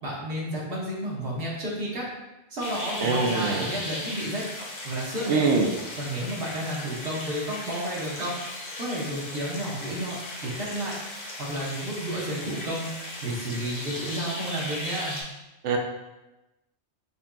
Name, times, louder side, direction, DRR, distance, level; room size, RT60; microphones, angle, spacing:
voice 1, 0.0-2.1 2.5-4.4 4.8-5.5 6.0-8.4 8.8-11.0 11.4-12.9 13.2-15.2, right 1 dB, 60° right, -5 dB, 1.1 m, -31 dB
sound 1, 2.6-15.2, left 1 dB, 45° left, 0.8 m, -37 dB
voice 2, 3.0-3.7 5.3-5.7 15.6-15.8, right 4 dB, 90° right, 2 dB, 0.9 m, -23 dB
5.3 x 2.6 x 2.2 m, 1.0 s
omnidirectional pair, 1.2 m